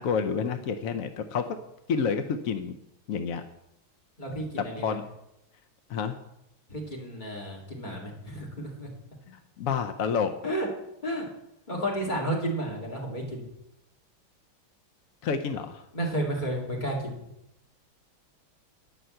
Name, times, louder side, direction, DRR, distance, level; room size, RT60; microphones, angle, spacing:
voice 1, 0.0-1.6 1.9-2.8 3.1-3.4 4.6-5.0 5.9-6.2 9.3-10.3 15.2-15.8, left 6 dB, 80° left, 8 dB, 0.7 m, -29 dB
voice 2, 4.2-5.0 6.7-8.9 10.4-10.7 11.0-11.3 11.7-13.5 15.9-17.1, right 1 dB, 20° left, -1 dB, 2.5 m, -32 dB
10.5 x 5.6 x 7.7 m, 0.83 s
omnidirectional pair, 2.2 m